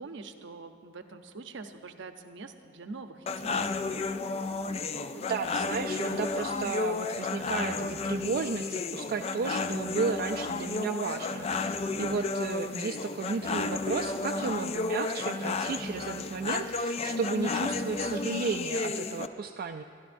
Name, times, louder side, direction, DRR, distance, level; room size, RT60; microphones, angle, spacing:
voice 1, 0.0-3.7, right 3 dB, 70° right, 7 dB, 0.7 m, -44 dB
sound 1, 3.3-19.3, left 3 dB, 30° left, 0.3 m, -32 dB
voice 2, 5.1-19.8, right 5 dB, 50° right, 5 dB, 0.3 m, -33 dB
sound 2, 7.0-11.2 11.4-11.6 11.9-12.0, left 1 dB, 55° left, 3.7 m, -59 dB
23.0 x 12.0 x 2.6 m, 2.5 s
head